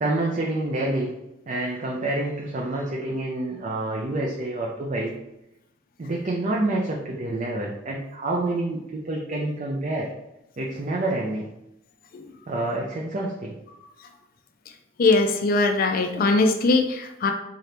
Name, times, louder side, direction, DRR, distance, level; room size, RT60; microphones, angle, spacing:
voice 1, 0.0-1.1 1.5-5.1 6.0-10.1 10.6-11.5 12.5-13.5, right 2 dB, 35° right, -2 dB, 0.4 m, -27 dB
voice 2, 15.0-17.3, left 3 dB, 45° left, 4 dB, 0.4 m, -21 dB
3.8 x 2.9 x 3.3 m, 0.89 s
head